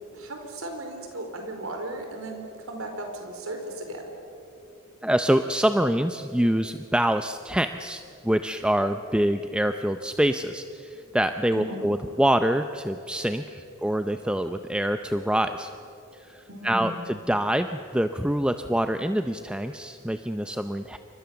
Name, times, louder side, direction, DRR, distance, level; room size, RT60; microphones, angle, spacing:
voice 1, 0.1-4.1 11.5-11.9 16.5-17.0, right 1 dB, 75° right, 3 dB, 4.6 m, -36 dB
voice 2, 5.0-15.7 16.1-21.0, right 1 dB, 5° right, 8 dB, 0.6 m, -25 dB
28.5 x 25.5 x 7.1 m, 2.9 s
head